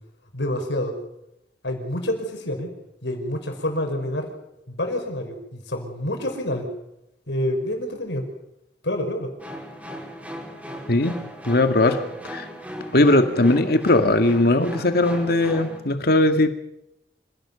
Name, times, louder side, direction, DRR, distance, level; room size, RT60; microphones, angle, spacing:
voice 1, 0.3-1.0 1.6-2.7 3.0-4.3 4.7-6.7 7.3-8.3 8.8-9.3, left 1 dB, 85° left, 4 dB, 5.1 m, -27 dB
sound 1, 9.4-15.8, equal, 10° right, 4.7 m, -36 dB
voice 2, 10.9-11.2 11.4-12.5 12.9-16.6, left 2 dB, 60° left, 7 dB, 2.0 m, -19 dB
26.5 x 16.5 x 7.0 m, 0.85 s
head